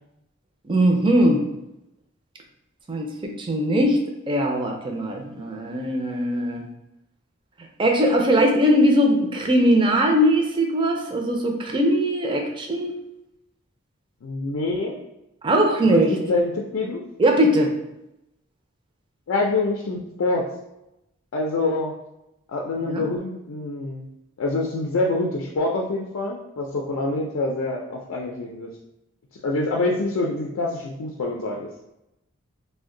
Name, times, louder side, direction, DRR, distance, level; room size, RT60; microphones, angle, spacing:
voice 1, 0.6-1.5 2.9-4.0 4.3-6.6 7.8-12.9 15.4-16.1 17.2-17.8 22.9-23.0, equal, 25° right, 1 dB, 0.4 m, -20 dB
voice 2, 14.2-15.0 15.9-17.0 19.3-20.5 21.3-21.9 22.5-24.1 24.4-28.7 29.4-31.7, left 2 dB, 90° left, 0 dB, 0.4 m, -26 dB
2.5 x 2.1 x 3.7 m, 0.89 s
head